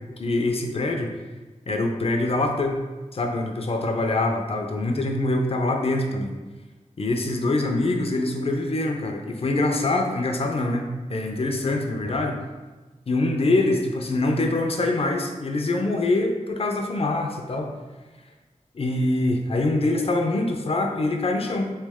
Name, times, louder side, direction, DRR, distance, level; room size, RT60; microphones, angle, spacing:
voice 1, 0.2-1.1 1.7-2.8 3.1-6.4 7.0-12.4 13.1-17.7 18.7-21.7, left 2 dB, 45° left, 3 dB, 0.5 m, -24 dB
3.4 x 3.2 x 3.5 m, 1.2 s
wide cardioid pair, 80°, 13 cm